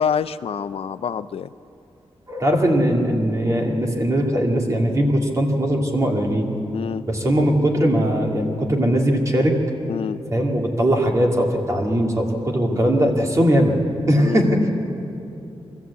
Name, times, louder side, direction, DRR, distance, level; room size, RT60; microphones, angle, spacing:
voice 1, 0.0-1.5 6.7-7.0 9.9-10.2 12.7-13.0 14.2-14.5, left 7 dB, 75° left, 13 dB, 0.5 m, -26 dB
voice 2, 2.3-6.5 7.1-9.5 10.3-13.7 14.1-14.6, equal, 30° right, 0 dB, 2.3 m, -20 dB
23.0 x 14.0 x 8.2 m, 2.7 s
wide cardioid pair, 175°, 10 cm